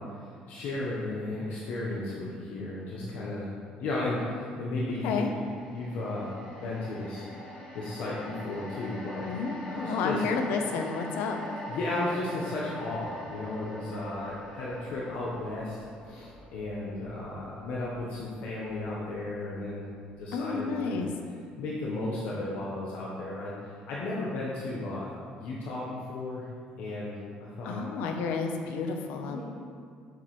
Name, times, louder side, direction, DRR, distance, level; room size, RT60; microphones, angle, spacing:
voice 1, 0.2-3.5 3.8-5.3 5.7-6.3 6.6-7.2 7.7-9.2 9.7-10.2 11.7-15.8 16.0-19.8 20.2-21.0 21.6-23.5 23.9-25.1 25.4-26.5 26.8-27.1 27.4-27.8 29.1-29.4, left 2 dB, 65° left, -5 dB, 1.0 m, -34 dB
sound 1, 5.2-19.5 19.9-20.1, left 1 dB, 30° left, 1.6 m, -44 dB
voice 2, 9.9-11.4 20.3-21.1 27.6-29.4, left 5 dB, 90° left, 4 dB, 0.7 m, -30 dB
7.0 x 6.0 x 3.1 m, 2.1 s
cardioid pair, 165°, 3 cm